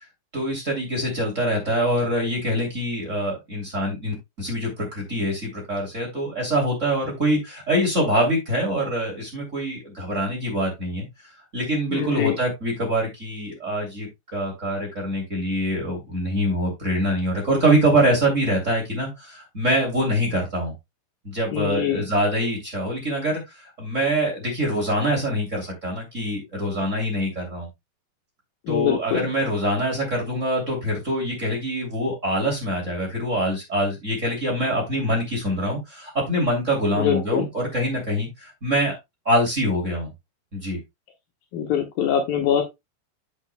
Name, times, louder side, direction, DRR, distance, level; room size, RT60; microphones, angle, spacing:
voice 1, 0.3-11.0 11.5-20.7 21.2-27.7 28.7-38.9 39.2-40.1 40.5-40.8, right 1 dB, 25° right, 1 dB, 1.7 m, -24 dB
voice 2, 11.9-12.4 21.5-22.0 28.7-29.3 37.0-37.5 41.5-42.6, left 9 dB, 80° left, 3 dB, 2.1 m, -23 dB
8.5 x 8.4 x 2.2 m, 0.20 s
omnidirectional pair, 5.8 m